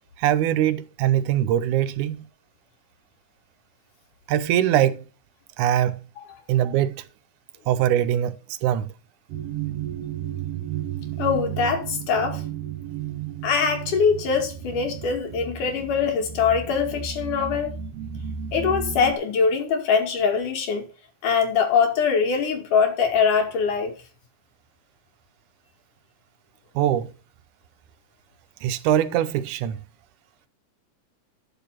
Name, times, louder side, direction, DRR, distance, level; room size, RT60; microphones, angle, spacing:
voice 1, 0.2-2.3 4.3-5.0 5.6-6.0 6.5-7.0 7.7-8.4 8.6-8.9 26.8-27.1 28.6-29.8, right 11 dB, 80° right, 2.2 m, -22 dB
sound 1, 9.3-19.1, right 9 dB, 60° right, 2.3 m, -33 dB
voice 2, 11.2-12.4 13.4-17.8 18.5-20.9 21.2-23.9, left 6 dB, 80° left, 3.7 m, -23 dB
10.0 x 6.9 x 5.7 m
omnidirectional pair, 3.6 m